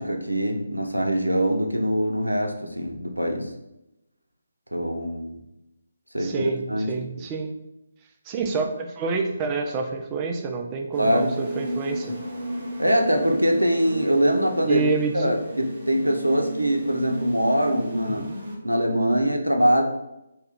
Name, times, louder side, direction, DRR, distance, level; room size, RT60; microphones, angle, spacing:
voice 1, 0.0-3.5 4.7-5.4 6.1-6.9 11.0-11.3 12.8-14.9 15.1-18.2 18.6-19.8, equal, 80° right, 3 dB, 0.5 m, -23 dB
voice 2, 6.2-7.6 8.3-12.2 14.7-15.3 18.1-18.4, right 4 dB, 20° right, 4 dB, 0.3 m, -28 dB
sound 1, 10.9-18.6, right 1 dB, 40° right, 0.8 m, -34 dB
2.7 x 2.3 x 3.4 m, 0.89 s
figure-of-eight pair, 145°, 0 cm